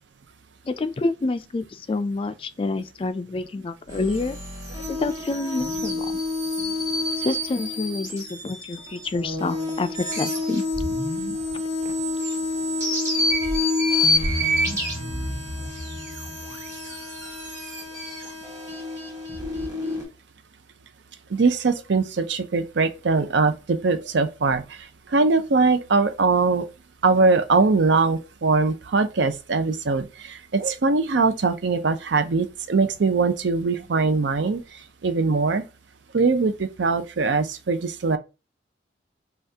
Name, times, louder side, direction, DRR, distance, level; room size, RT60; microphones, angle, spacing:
voice 1, 0.6-4.4 4.9-6.2 7.2-10.6 11.8-11.9, left 3 dB, 30° left, 0.3 m, -28 dB
sound 1, 3.9-20.0, left 2 dB, 20° right, 1.4 m, -27 dB
voice 2, 21.3-24.8 25.1-26.6 27.0-34.6 35.0-35.6 36.1-38.2, right 4 dB, 70° right, 0.5 m, -21 dB
5.5 x 2.4 x 2.7 m
head